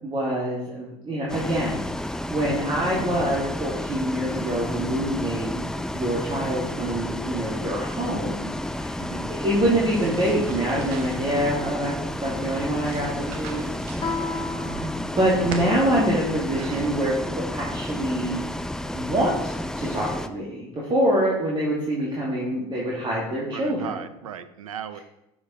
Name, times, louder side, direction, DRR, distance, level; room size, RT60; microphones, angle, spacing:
voice 1, 0.0-1.8 2.3-5.6 5.9-8.9 9.3-11.9 12.2-13.7 14.6-18.4 18.9-23.9, right 1 dB, 30° right, -5 dB, 2.2 m, -25 dB
Bus, 1.3-20.3, left 1 dB, 5° left, 0.4 m, -31 dB
voice 2, 9.0-9.3 14.3-14.7 16.6-16.9 23.4-25.0, right 9 dB, 80° right, 12 dB, 0.6 m, -37 dB
sound 1, 9.8-17.3, right 4 dB, 60° right, 1.3 m, -42 dB
Guitar, 14.0-16.4, left 4 dB, 30° left, 1.2 m, -34 dB
7.2 x 6.6 x 4.1 m, 0.88 s
hypercardioid pair, 70°, 17 cm